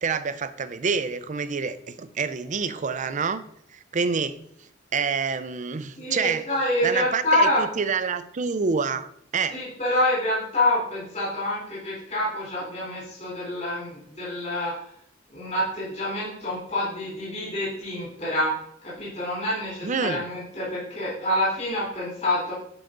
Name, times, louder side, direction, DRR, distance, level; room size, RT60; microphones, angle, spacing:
voice 1, 0.0-3.4 3.7-4.4 4.9-6.5 6.8-9.1 9.3-9.6 19.8-20.2, right 5 dB, 40° right, 13 dB, 0.5 m, -27 dB
voice 2, 6.0-7.6 9.5-14.7 15.3-18.5 18.8-22.5, left 1 dB, 35° left, -7 dB, 3.7 m, -27 dB
11.5 x 4.9 x 3.9 m, 0.69 s
head